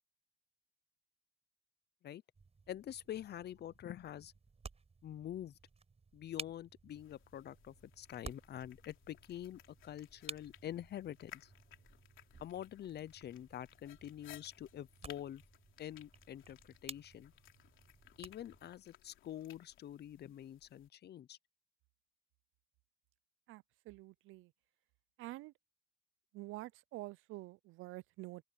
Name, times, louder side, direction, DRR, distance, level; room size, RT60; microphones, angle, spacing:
sound 1, 2.3-18.7, right 4 dB, 30° right, 5.1 m, -55 dB
voice 1, 2.7-4.3 5.0-5.5 6.1-11.5 12.4-15.4 15.8-17.3 18.2-21.4, left 11 dB, 55° left, 0.6 m, -46 dB
sound 2, 6.9-20.9, left 12 dB, 85° left, 3.2 m, -61 dB
voice 2, 23.5-24.5 25.2-25.5 26.3-28.4, right 18 dB, 90° right, 0.5 m, -48 dB
open air
cardioid pair, 90°, 20 cm